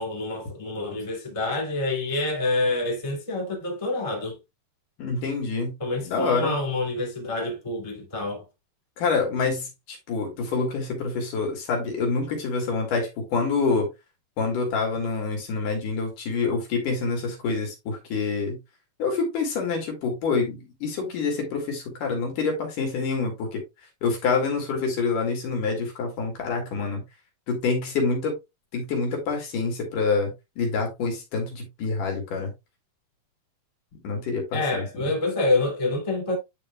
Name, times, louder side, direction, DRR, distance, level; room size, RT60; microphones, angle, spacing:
voice 1, 0.0-4.4 5.8-8.4 34.5-36.4, left 2 dB, 15° left, 1.5 m, -27 dB
voice 2, 5.0-5.7 6.0-6.5 9.0-13.9 14.4-18.6 19.0-23.6 24.0-27.0 27.5-28.3 28.7-32.5 34.0-35.1, left 4 dB, 60° left, 3.5 m, -27 dB
10.0 x 5.4 x 2.3 m
omnidirectional pair, 4.4 m